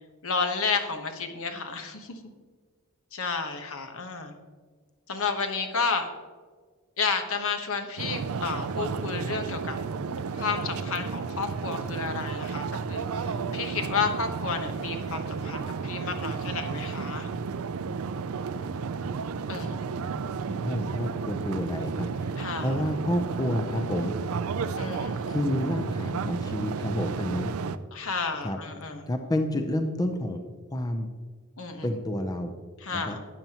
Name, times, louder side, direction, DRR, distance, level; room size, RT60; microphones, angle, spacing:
voice 1, 0.2-2.3 3.1-4.3 5.1-6.1 7.0-9.8 10.3-17.3 19.5-19.8 22.4-22.7 24.8-25.4 27.9-29.0 31.6-31.9 32.8-33.2, left 5 dB, 65° left, 5 dB, 1.1 m, -31 dB
sound 1, 8.0-27.8, right 5 dB, 70° right, 0.4 m, -32 dB
voice 2, 20.4-24.5 25.3-27.5 28.4-28.6 29.1-30.4 30.7-31.1 31.8-32.5 32.9-33.2, left 1 dB, 15° left, 6 dB, 0.6 m, -30 dB
12.5 x 9.3 x 3.0 m, 1.5 s
head